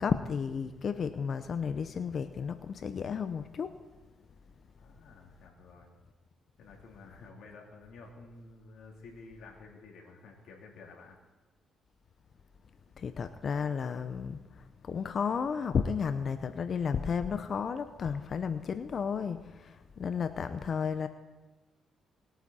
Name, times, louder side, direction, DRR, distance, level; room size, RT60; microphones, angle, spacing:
voice 1, 0.0-3.7 13.0-21.1, left 6 dB, 50° left, 11 dB, 0.6 m, -33 dB
voice 2, 4.8-5.9 6.6-11.2, left 3 dB, 75° left, -1 dB, 3.2 m, -51 dB
20.5 x 9.2 x 4.2 m, 1.2 s
cardioid pair, 90°, 0 cm